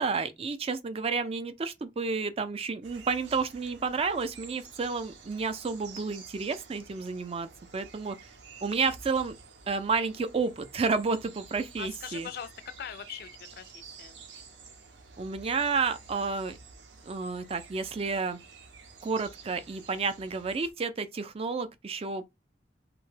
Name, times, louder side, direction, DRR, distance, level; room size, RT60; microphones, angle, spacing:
voice 1, 0.0-8.2 8.6-9.4 9.7-12.3 15.2-16.6 17.0-18.4 19.0-22.3, right 4 dB, 35° right, 0.4 m, -31 dB
sound 1, 2.8-20.7, right 5 dB, 85° right, 0.6 m, -51 dB
voice 2, 11.8-14.2, left 9 dB, 60° left, 0.3 m, -42 dB
2.8 x 2.2 x 3.1 m
head